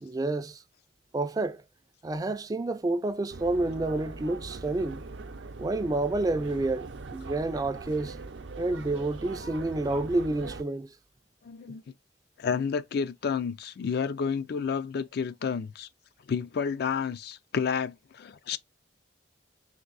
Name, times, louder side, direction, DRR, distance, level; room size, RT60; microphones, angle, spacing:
voice 1, 0.0-0.6 1.1-1.6 2.0-5.0 5.6-8.2 8.6-10.9, right 2 dB, 20° right, 0.3 m, -29 dB
sound 1, 3.3-10.6, right 3 dB, 75° right, 0.6 m, -41 dB
voice 2, 11.4-11.8 12.4-15.9 16.3-18.6, left 6 dB, 60° left, 0.4 m, -30 dB
3.6 x 2.6 x 3.9 m
head